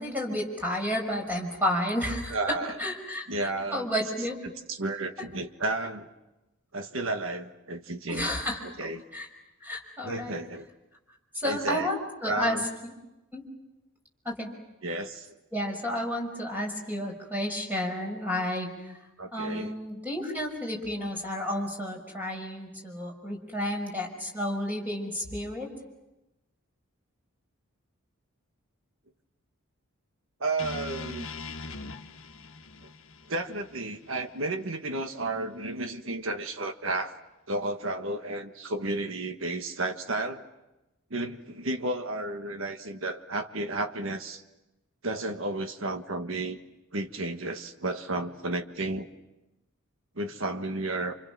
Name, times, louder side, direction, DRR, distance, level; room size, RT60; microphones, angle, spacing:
voice 1, 0.0-4.4 8.1-8.6 9.1-9.3 9.6-10.4 11.3-12.9 13.3-13.4 14.2-14.5 15.5-19.0 19.3-25.7, left 1 dB, 10° right, 0 dB, 5.8 m, -31 dB
voice 2, 2.3-2.8 3.3-3.9 4.4-6.1 6.7-8.4 8.6-9.0 10.0-10.6 11.5-11.9 12.3-12.6 14.8-15.4 19.2-19.7 30.4-31.3 33.3-37.1 37.5-40.4 41.1-44.4 45.0-46.6 46.9-49.1 50.1-51.1, right 2 dB, 65° right, 6 dB, 1.5 m, -32 dB
sound 1, 30.6-34.7, left 3 dB, 65° left, 1.4 m, -41 dB
29.5 x 27.5 x 6.2 m, 0.98 s
head